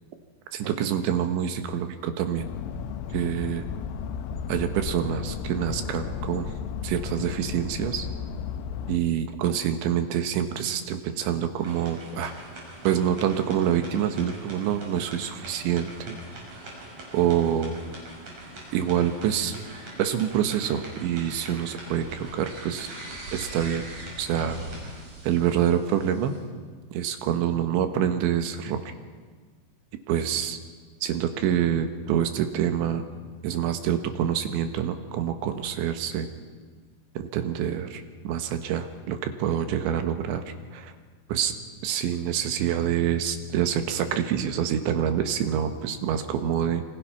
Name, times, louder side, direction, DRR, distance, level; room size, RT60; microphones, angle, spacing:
voice 1, 0.5-2.5 3.1-3.7 4.5-6.5 6.8-8.1 8.9-12.3 12.8-16.2 17.1-17.8 18.7-19.6 20.0-22.9 23.3-23.8 24.2-24.6 25.2-26.3 26.9-28.8 30.1-30.6 31.0-33.0 33.4-36.3 37.1-40.4 40.7-40.9 41.3-41.5 41.8-46.8, right 9 dB, 70° right, 7 dB, 3.4 m, -26 dB
sound 1, 2.4-9.0, left 6 dB, 85° left, 3.6 m, -34 dB
sound 2, 11.6-26.4, right 1 dB, 35° right, 6.9 m, -42 dB
28.0 x 25.0 x 5.9 m, 1.5 s
omnidirectional pair, 5.9 m